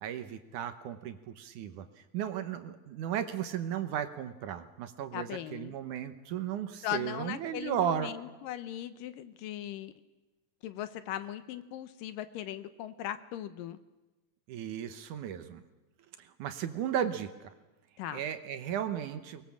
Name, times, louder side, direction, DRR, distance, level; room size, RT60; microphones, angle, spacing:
voice 1, 0.0-1.9 2.1-8.1 14.5-15.6 16.2-17.3 18.1-19.4, right 9 dB, 70° right, 9 dB, 2.4 m, -35 dB
voice 2, 5.1-5.7 6.8-9.9 10.6-13.8 18.0-18.2, left 11 dB, 80° left, 12 dB, 2.5 m, -39 dB
23.5 x 21.0 x 7.3 m, 1.1 s
omnidirectional pair, 4.0 m